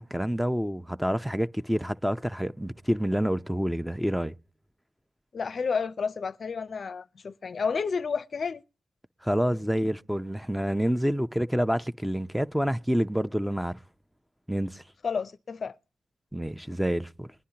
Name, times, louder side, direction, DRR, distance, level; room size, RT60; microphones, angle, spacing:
voice 1, 0.0-4.3 9.2-13.8 14.5-14.8 16.3-17.3, equal, ahead, 0.6 m, -28 dB
voice 2, 5.3-8.6 15.0-15.7, left 5 dB, 55° left, 0.5 m, -31 dB
21.0 x 10.0 x 2.8 m
cardioid pair, 65°, 0 cm